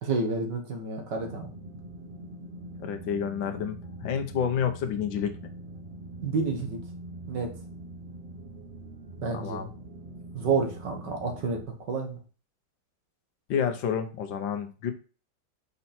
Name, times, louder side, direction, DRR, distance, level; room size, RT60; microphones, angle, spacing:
voice 1, 0.0-1.5 6.2-6.8 7.3-7.5 9.2-9.7 10.3-11.6 11.9-12.2, right 4 dB, 65° right, 3 dB, 2.1 m, -29 dB
sound 1, 1.2-11.6, right 1 dB, 35° right, 0.9 m, -43 dB
voice 2, 2.8-5.3 9.3-9.7 13.5-14.9, left 7 dB, 80° left, 7 dB, 1.6 m, -29 dB
5.5 x 5.3 x 4.3 m, 0.36 s
omnidirectional pair, 2.1 m